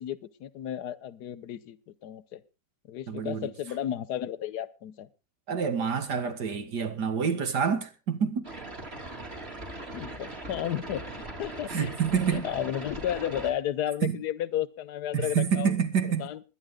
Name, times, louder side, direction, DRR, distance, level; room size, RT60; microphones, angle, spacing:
voice 1, 0.0-2.4 2.9-5.1 9.9-11.9 12.2-15.7 16.2-16.4, left 11 dB, 70° left, 1.4 m, -33 dB
voice 2, 3.1-3.5 5.5-8.5 11.7-12.5 14.0-14.2 15.1-16.3, right 7 dB, 70° right, 2.4 m, -27 dB
sound 1, 8.4-13.5, right 2 dB, 35° right, 3.1 m, -40 dB
21.5 x 10.5 x 3.7 m
omnidirectional pair, 1.9 m